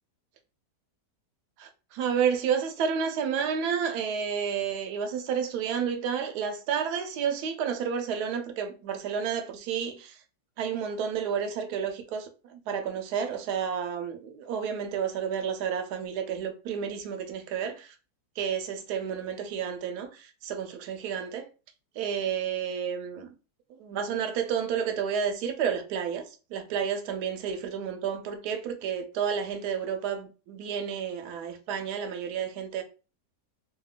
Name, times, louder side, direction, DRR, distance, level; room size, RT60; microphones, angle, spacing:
voice 1, 1.6-10.2 10.6-17.9 18.4-21.5 22.0-23.3 23.7-32.8, right 7 dB, 75° right, 1.1 m, -31 dB
2.8 x 2.6 x 2.3 m
omnidirectional pair, 1.8 m